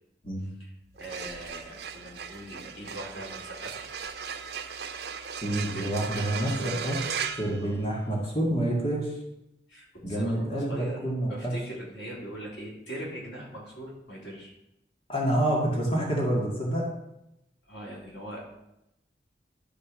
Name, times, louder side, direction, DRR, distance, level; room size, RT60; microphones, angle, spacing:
sound 1, 0.9-8.3, right 6 dB, 65° right, 0.8 m, -37 dB
voice 1, 1.0-3.9 5.7-7.0 7.6-7.8 9.7-14.5 17.7-18.4, right 1 dB, 90° left, -5 dB, 3.9 m, -41 dB
voice 2, 5.4-7.0 7.4-9.2 10.0-11.5 15.1-16.9, right 1 dB, 30° left, -3 dB, 2.0 m, -28 dB
11.5 x 5.1 x 6.2 m, 0.88 s
head